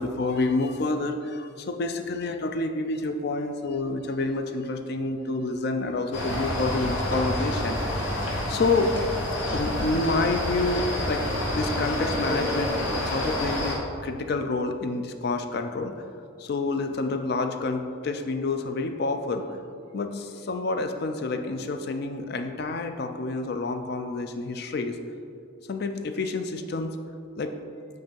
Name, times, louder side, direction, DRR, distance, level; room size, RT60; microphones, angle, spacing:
voice 1, 0.0-8.0 8.5-8.9 9.5-11.2 11.5-16.0 16.4-19.5 19.9-25.0 25.7-27.0 27.4-27.6, left 3 dB, 50° left, 6 dB, 0.4 m, -28 dB
sound 1, 6.1-13.7, left 1 dB, 75° left, 1.3 m, -28 dB
7.6 x 2.6 x 5.4 m, 2.4 s
head